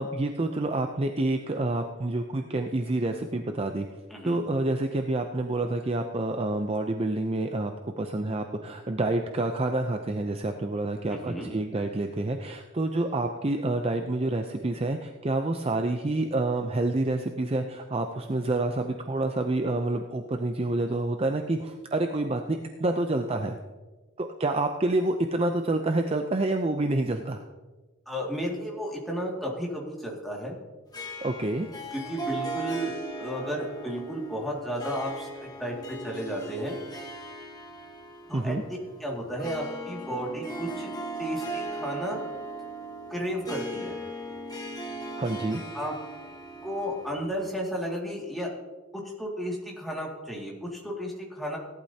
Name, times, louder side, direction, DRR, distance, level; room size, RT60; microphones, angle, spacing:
voice 1, 0.0-3.9 4.2-23.6 24.2-27.4 31.2-31.7 38.3-38.6 45.2-45.6, right 2 dB, 30° right, 5 dB, 0.5 m, -28 dB
voice 2, 4.1-4.4 11.1-11.5 28.1-30.5 31.9-36.8 38.3-38.6 39.0-40.9 41.2-42.2 43.1-44.0 45.7-45.9 46.6-48.5 49.2-51.6, equal, ahead, -3 dB, 2.2 m, -33 dB
Harp, 30.9-47.7, right 1 dB, 20° left, 1.3 m, -38 dB
17.5 x 11.5 x 2.8 m, 1.2 s
head